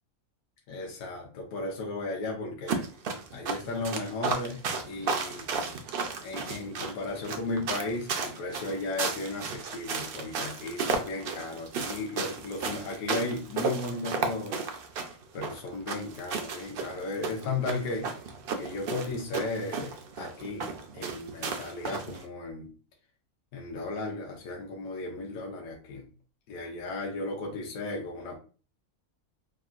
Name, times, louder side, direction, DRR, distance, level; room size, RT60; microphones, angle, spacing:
voice 1, 0.7-2.8 3.3-5.5 6.2-14.6 15.3-18.1 18.6-22.7 23.5-26.1 26.5-28.4, left 2 dB, 75° left, -1 dB, 1.1 m, -35 dB
sound 1, 2.7-22.2, right 5 dB, 75° right, 0.5 m, -34 dB
3.5 x 2.1 x 2.4 m, 0.36 s
omnidirectional pair, 1.5 m